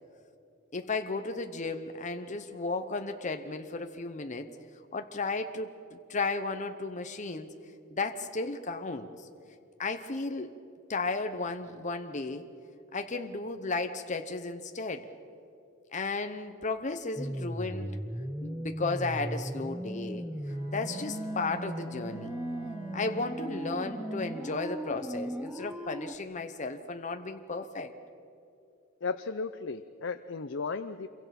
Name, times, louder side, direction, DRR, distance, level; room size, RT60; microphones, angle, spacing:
voice 1, 0.7-4.5 4.9-7.5 7.9-9.3 9.8-10.5 10.9-12.4 12.9-15.1 15.9-17.9 18.4-20.2 20.7-22.4 22.9-27.9, left 3 dB, 40° left, 7 dB, 0.9 m, -34 dB
sound 1, 17.2-26.2, equal, 5° right, 0.5 m, -37 dB
Bowed string instrument, 20.5-24.8, right 6 dB, 35° right, 7.1 m, -46 dB
voice 2, 29.0-31.1, left 4 dB, 65° left, 9 dB, 0.6 m, -35 dB
27.0 x 23.5 x 5.9 m, 2.6 s
head